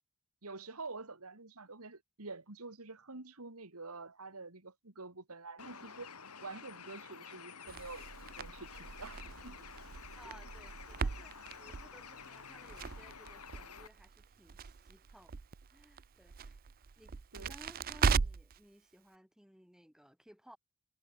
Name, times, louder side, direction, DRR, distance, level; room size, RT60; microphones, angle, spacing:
voice 1, 0.4-6.1 6.4-9.6 17.3-17.5, right 3 dB, 75° right, 2.5 m, -47 dB
Bird, 5.6-13.9, left 6 dB, 90° left, 3.8 m, -51 dB
Crackle, 7.7-18.6, right 5 dB, 40° right, 0.5 m, -38 dB
voice 2, 10.2-15.4 15.7-16.6 17.0-20.6, equal, 5° right, 3.2 m, -59 dB
head